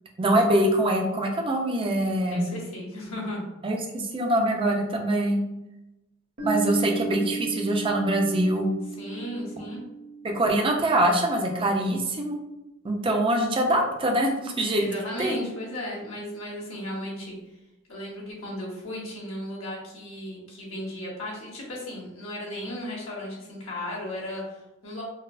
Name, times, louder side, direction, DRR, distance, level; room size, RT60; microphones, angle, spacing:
voice 1, 0.2-2.5 3.6-5.4 6.4-8.7 10.2-12.4 12.8-14.9 15.2-15.4, right 1 dB, 25° right, 2 dB, 0.4 m, -24 dB
voice 2, 2.3-3.4 9.0-9.8 14.8-17.3 17.9-25.0, left 1 dB, 80° left, -5 dB, 1.2 m, -35 dB
Piano, 6.4-11.7, right 4 dB, 45° right, 0.8 m, -35 dB
4.0 x 2.0 x 2.5 m, 0.95 s
head